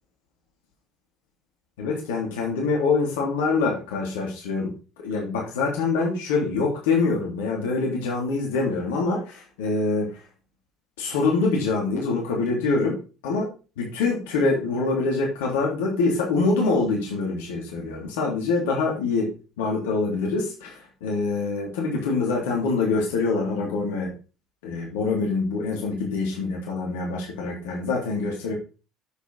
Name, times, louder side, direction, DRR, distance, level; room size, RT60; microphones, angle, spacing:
voice 1, 1.8-4.7 5.0-10.2 11.0-24.1 24.6-28.5, left 3 dB, 65° left, -2 dB, 3.4 m, -25 dB
11.0 x 8.2 x 4.2 m, 0.34 s
figure-of-eight pair, 60°, 0 cm